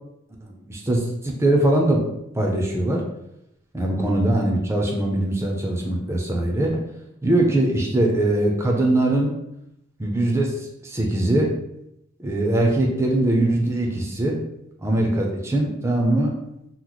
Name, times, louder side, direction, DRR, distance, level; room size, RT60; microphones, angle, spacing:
voice 1, 0.4-2.0 2.4-3.0 3.7-6.8 7.2-9.3 10.0-11.5 12.2-14.4 14.8-16.3, right 1 dB, 15° right, 0 dB, 0.5 m, -21 dB
3.0 x 2.0 x 3.9 m, 0.82 s
head